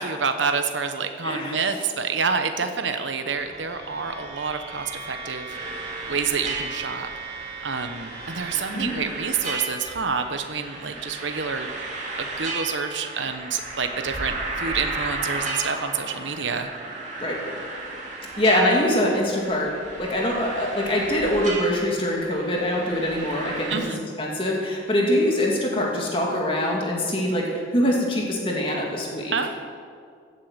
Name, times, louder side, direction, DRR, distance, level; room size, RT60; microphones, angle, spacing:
voice 1, 0.0-5.5 6.1-7.1 7.6-11.7 12.2-16.7 23.7-24.0 29.3-29.5, right 5 dB, 85° right, 7 dB, 1.0 m, -28 dB
voice 2, 1.2-1.6 8.7-8.9 17.2-17.4 18.3-23.9 24.2-29.3, left 1 dB, 30° left, -2 dB, 2.3 m, -24 dB
sound 1, 3.3-8.6, right 4 dB, 55° right, 3.5 m, -38 dB
sound 2, 5.5-23.8, right 2 dB, 40° right, 2.6 m, -34 dB
16.5 x 8.5 x 7.4 m, 2.1 s
head